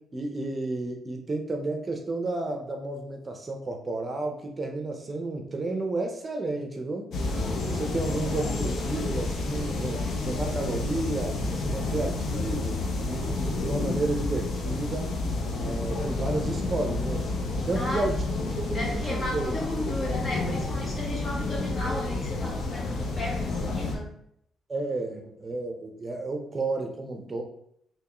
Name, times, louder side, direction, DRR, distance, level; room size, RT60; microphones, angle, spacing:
voice 1, 0.0-7.1 7.6-15.2 15.6-17.3 17.7-19.5 24.7-27.4, right 2 dB, 30° right, 3 dB, 0.6 m, -32 dB
sound 1, 7.1-24.0, left 2 dB, 65° left, 0.7 m, -30 dB
voice 2, 17.7-18.1 18.7-24.1, left 1 dB, 45° left, -3 dB, 1.4 m, -34 dB
3.5 x 3.0 x 3.0 m, 0.71 s
cardioid pair, 90°, 0 cm